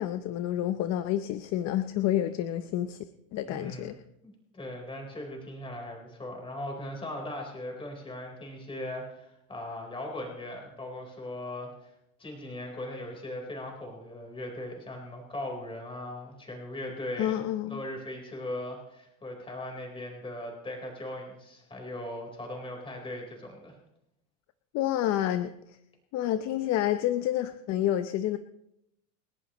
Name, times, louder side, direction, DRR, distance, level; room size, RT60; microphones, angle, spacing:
voice 1, 0.0-3.0 3.3-4.0 17.2-17.8 24.7-25.8 26.1-28.4, left 12 dB, 45° left, 10 dB, 0.8 m, -29 dB
voice 2, 3.5-3.9 4.2-11.9 12.2-23.8, left 1 dB, 15° left, 1 dB, 4.3 m, -39 dB
28.5 x 11.0 x 3.1 m, 0.81 s
supercardioid pair, 135°, 38 cm